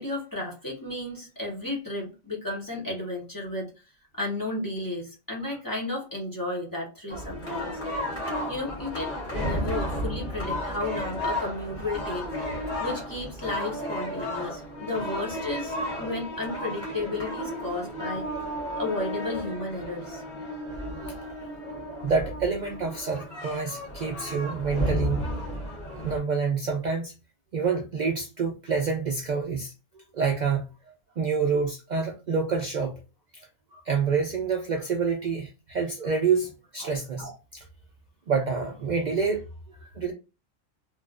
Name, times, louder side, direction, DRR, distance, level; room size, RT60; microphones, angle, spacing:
voice 1, 0.0-3.7 4.1-7.7 8.5-12.5 12.8-18.3 18.8-20.2, left 2 dB, 20° left, 0.9 m, -33 dB
sound 1, 7.1-26.2, equal, 40° left, 1.3 m, -33 dB
voice 2, 22.0-25.2 26.0-27.1 27.5-29.7 30.1-30.7 31.2-32.9 33.9-37.6 38.3-39.4 39.9-40.1, right 5 dB, 70° right, 0.4 m, -27 dB
3.0 x 2.4 x 2.4 m
omnidirectional pair, 1.4 m